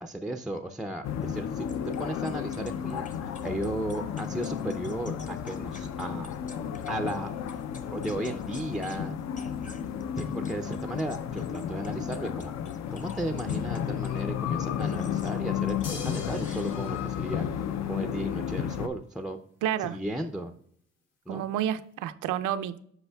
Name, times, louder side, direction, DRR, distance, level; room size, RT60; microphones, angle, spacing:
voice 1, 0.0-1.7 2.0-3.1 3.4-6.3 6.9-7.3 7.9-9.1 10.2-12.5 12.9-17.5 17.8-19.4 19.8-20.5 21.3-21.5, right 1 dB, ahead, 0.4 m, -35 dB
sound 1, 1.0-18.9, left 9 dB, 60° left, 0.5 m, -33 dB
sound 2, 1.7-7.2 7.5-9.0 9.3-14.2 14.8-15.4 15.7-17.2, left 3 dB, 25° left, 0.8 m, -52 dB
sound 3, 15.8-18.3 20.0-20.1, left 4 dB, 90° left, 1.3 m, -43 dB
voice 2, 19.6-20.0 21.3-22.8, right 10 dB, 80° right, 0.5 m, -30 dB
8.1 x 5.4 x 2.2 m
cardioid pair, 90°, 30 cm